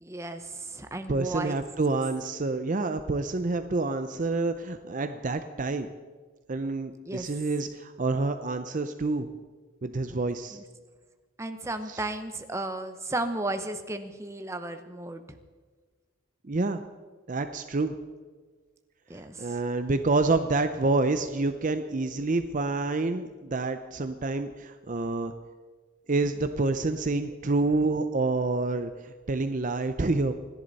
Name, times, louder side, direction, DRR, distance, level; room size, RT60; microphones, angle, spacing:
voice 1, 0.0-1.6 7.1-7.3 10.5-10.6 11.4-15.4 19.1-19.6, right 2 dB, 15° right, 7 dB, 0.9 m, -34 dB
voice 2, 1.1-5.9 6.5-9.3 9.8-10.6 11.9-12.0 16.5-16.8 17.3-17.9 19.4-25.3 26.1-30.3, right 3 dB, 35° right, 9 dB, 0.6 m, -28 dB
27.5 x 11.0 x 4.1 m, 1.4 s
head